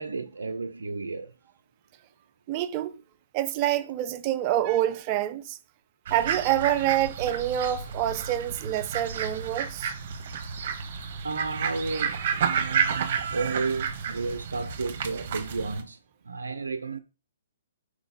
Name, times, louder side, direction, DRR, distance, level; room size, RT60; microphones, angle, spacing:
voice 1, 0.0-1.3 11.2-17.0, right 4 dB, 80° right, 0.5 m, -32 dB
voice 2, 2.5-3.0 3.3-5.6 6.1-9.9, right 12 dB, 35° right, 0.6 m, -27 dB
sound 1, 6.1-15.8, right 7 dB, 50° right, 1.1 m, -31 dB
4.8 x 3.9 x 5.1 m
figure-of-eight pair, 130°, 0 cm